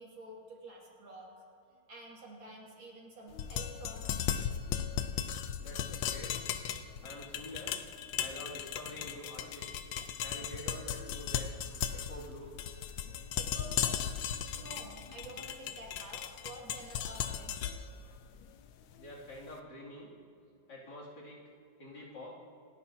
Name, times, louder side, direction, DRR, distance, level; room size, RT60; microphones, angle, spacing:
voice 1, 0.0-1.4 1.9-4.5 12.1-12.2 13.1-14.1 14.6-17.5 18.0-18.2 21.9-22.0, right 1 dB, 80° right, -3 dB, 3.1 m, -50 dB
sound 1, 3.3-19.4, left 9 dB, 80° left, 1.4 m, -37 dB
voice 2, 5.6-6.3 7.0-7.7 8.2-9.7 10.2-11.6 11.9-12.6 19.0-20.1 20.7-21.4 21.8-22.4, left 1 dB, 60° left, -6 dB, 3.3 m, -47 dB
28.0 x 11.0 x 2.8 m, 2.5 s
omnidirectional pair, 2.1 m